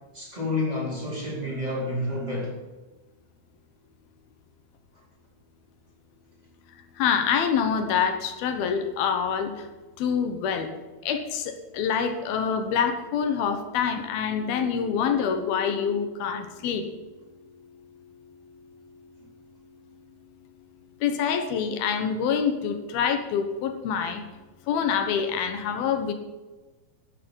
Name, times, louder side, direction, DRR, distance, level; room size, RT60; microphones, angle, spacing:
voice 1, 0.1-2.6, left 2 dB, 10° right, -3 dB, 3.9 m, -29 dB
voice 2, 7.0-9.5 10.0-10.7 11.1-16.9 21.0-24.2 24.7-26.1, left 7 dB, 80° left, 7 dB, 3.1 m, -26 dB
12.5 x 8.6 x 9.0 m, 1.2 s
omnidirectional pair, 4.2 m